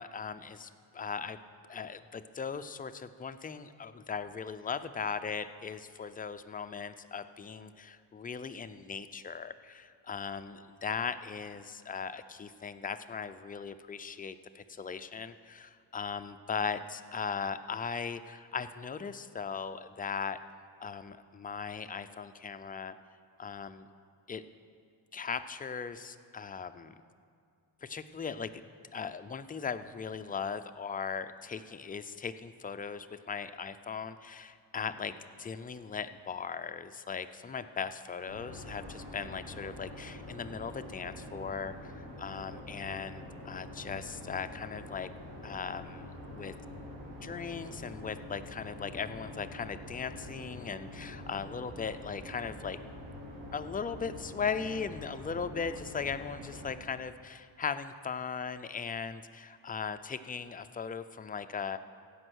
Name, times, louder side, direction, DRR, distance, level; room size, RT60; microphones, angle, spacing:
voice 1, 0.0-1.4 1.7-20.4 20.8-22.9 23.4-23.9 24.3-24.4 25.1-26.9 27.8-28.5 28.9-35.1 35.4-45.1 45.4-46.5 47.2-52.8 53.5-61.8, left 6 dB, 20° left, 10 dB, 0.3 m, -38 dB
sound 1, 38.2-56.7, left 1 dB, 90° right, 3.0 m, -46 dB
15.5 x 5.3 x 6.3 m, 2.3 s
cardioid pair, 95°, 47 cm